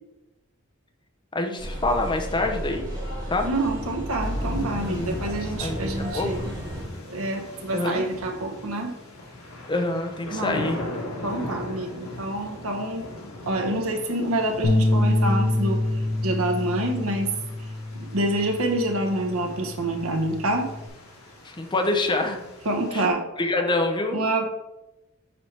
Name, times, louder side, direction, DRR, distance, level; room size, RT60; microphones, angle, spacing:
voice 1, 1.3-2.8 3.3-3.5 4.9-5.1 5.6-5.9 6.1-6.5 7.7-8.1 9.7-10.8 21.4-22.4 22.9-23.1 23.4-24.2, left 2 dB, 20° left, 4 dB, 0.7 m, -26 dB
sound 1, 1.6-6.8, equal, 20° right, 2.1 m, -32 dB
voice 2, 3.4-6.5 7.1-8.9 10.3-10.6 11.2-13.1 13.5-15.8 16.2-17.3 18.0-20.7 22.6-23.2 24.1-24.4, right 1 dB, 80° right, 4 dB, 1.0 m, -27 dB
sound 2, 4.2-23.1, left 1 dB, 85° left, 1.6 m, -39 dB
sound 3, 14.6-20.9, left 1 dB, 60° left, 0.7 m, -26 dB
6.9 x 4.6 x 3.3 m, 0.96 s
head